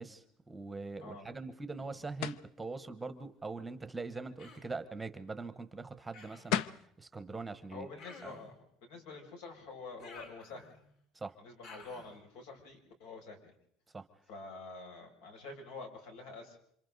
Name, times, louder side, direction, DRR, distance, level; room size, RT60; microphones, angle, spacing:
voice 1, 0.0-7.9 8.2-8.3 11.1-11.3 13.9-14.1, right 3 dB, 10° right, 11 dB, 0.9 m, -42 dB
voice 2, 1.0-1.3 7.7-8.5 8.8-10.8 11.4-13.5 14.3-16.6, left 3 dB, 85° left, 3 dB, 6.4 m, -47 dB
sound 1, 2.2-2.5 6.2-6.3 6.5-6.9, left 11 dB, 65° left, 0.8 m, -33 dB
Human voice, 4.4-4.8 6.1-6.6 8.0-8.6 10.0-10.9 11.6-12.2, left 4 dB, 50° left, 6.3 m, -53 dB
28.5 x 26.0 x 4.0 m, 0.71 s
cardioid pair, 175°, 0 cm